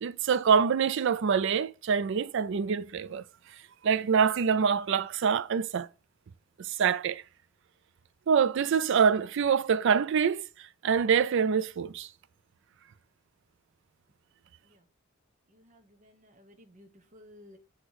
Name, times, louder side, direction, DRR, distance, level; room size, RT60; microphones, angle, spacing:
voice 1, 0.0-3.2 3.8-5.9 6.6-7.2 8.3-10.4 10.8-12.1, right 6 dB, 65° right, 0.4 m, -25 dB
voice 2, 15.5-17.6, left 1 dB, 40° right, 0.8 m, -56 dB
8.0 x 3.0 x 4.7 m
head